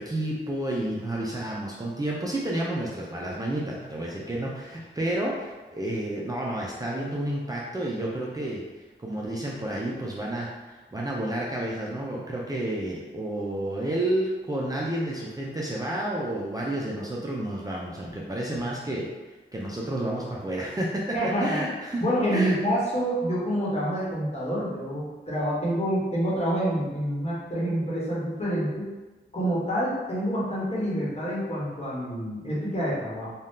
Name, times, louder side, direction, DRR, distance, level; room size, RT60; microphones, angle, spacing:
voice 1, 0.0-8.6 9.0-19.1 19.5-22.0 22.3-22.6, right 1 dB, 20° right, -4 dB, 0.4 m, -30 dB
voice 2, 21.1-21.6 22.0-28.9 29.3-33.3, equal, 35° left, -7 dB, 1.2 m, -27 dB
2.7 x 2.3 x 3.5 m, 1.2 s
wide cardioid pair, 75°, 20 cm